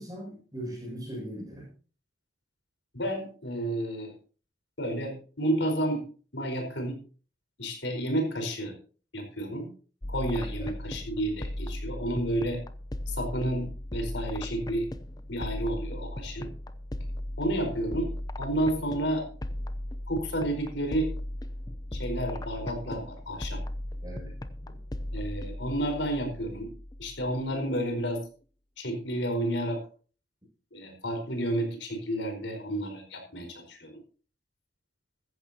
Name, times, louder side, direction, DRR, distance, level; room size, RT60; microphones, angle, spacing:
voice 1, 0.0-1.7 10.6-10.7 24.0-24.3 24.6-24.8, equal, 20° right, -2 dB, 6.9 m, -39 dB
voice 2, 2.9-4.1 4.8-6.0 6.3-7.0 7.6-8.7 9.1-9.7 10.1-12.6 13.1-14.9 15.3-16.5 17.4-18.1 18.4-19.2 20.1-21.1 21.9-23.6 25.1-26.7 27.0-28.2 28.8-29.8 30.7-34.0, right 1 dB, 75° left, 5 dB, 4.7 m, -31 dB
sound 1, 10.0-27.6, left 1 dB, 20° left, 0.7 m, -37 dB
15.0 x 14.5 x 2.9 m, 0.39 s
head